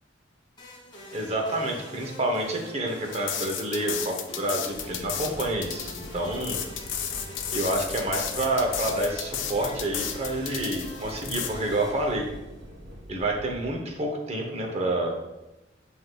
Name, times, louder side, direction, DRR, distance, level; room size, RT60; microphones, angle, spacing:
sound 1, 0.6-12.8, left 1 dB, 25° left, 1.3 m, -45 dB
voice 1, 1.1-6.6 7.5-12.3 13.1-15.2, right 1 dB, 30° right, 1 dB, 0.6 m, -28 dB
sound 2, 3.1-11.5, left 8 dB, 70° left, 0.4 m, -33 dB
sound 3, 4.7-13.7, equal, 75° right, 0.9 m, -43 dB
7.5 x 2.7 x 2.2 m, 0.97 s
head